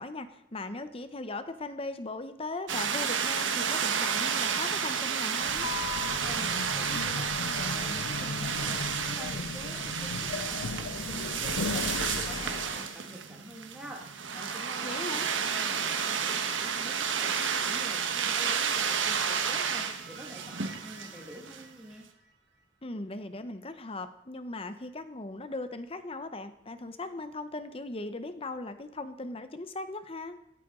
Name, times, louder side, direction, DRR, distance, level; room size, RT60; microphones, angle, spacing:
voice 1, 0.0-5.7 14.8-15.3 22.8-30.4, left 2 dB, 30° left, 10 dB, 0.9 m, -38 dB
sound 1, 2.7-21.6, right 7 dB, 75° right, 1.3 m, -31 dB
sound 2, 5.4-12.9, left 4 dB, 80° left, 0.5 m, -36 dB
voice 2, 6.2-22.1, equal, 5° right, -2 dB, 2.0 m, -47 dB
sound 3, 14.1-17.2 19.2-22.6, right 3 dB, 60° right, 2.1 m, -51 dB
16.0 x 13.5 x 3.8 m, 0.78 s
head